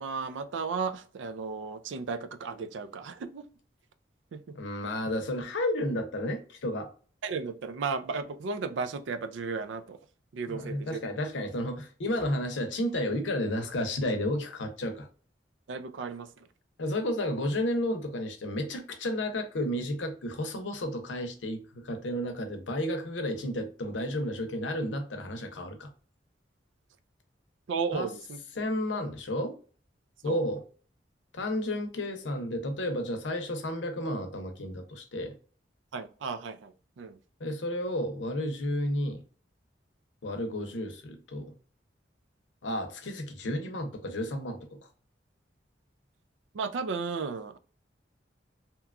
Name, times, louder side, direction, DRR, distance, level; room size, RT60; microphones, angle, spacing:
voice 1, 0.0-3.5 4.3-4.4 7.2-10.0 10.3-11.0 15.7-16.5 27.7-28.4 30.3-30.4 35.9-37.2 46.5-47.6, right 5 dB, 80° right, 0.4 m, -34 dB
voice 2, 4.5-6.9 10.5-15.1 16.8-25.9 27.9-28.1 28.5-29.5 30.2-30.6 31.3-35.3 37.4-39.2 40.2-41.5 42.6-44.8, left 1 dB, 85° left, 0.7 m, -32 dB
2.9 x 2.2 x 2.4 m
head